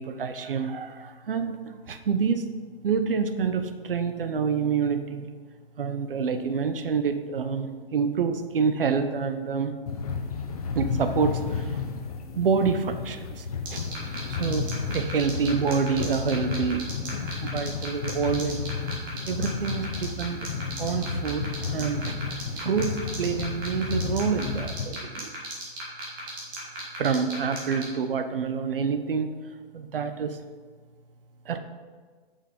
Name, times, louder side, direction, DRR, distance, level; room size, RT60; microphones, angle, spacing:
voice 1, 0.0-2.4 2.8-5.3 5.8-9.7 10.7-11.8 12.3-13.8 14.1-16.9 17.4-18.7 19.3-20.5 20.8-25.3 27.0-29.4 29.7-30.4 31.4-31.6, right 6 dB, 65° right, 8 dB, 0.8 m, -27 dB
sound 1, 9.9-24.9, left 5 dB, 40° left, 0.8 m, -32 dB
sound 2, 13.6-27.8, right 3 dB, 20° right, 1.9 m, -36 dB
7.1 x 5.9 x 5.1 m, 1.5 s
hypercardioid pair, 165°, 30 cm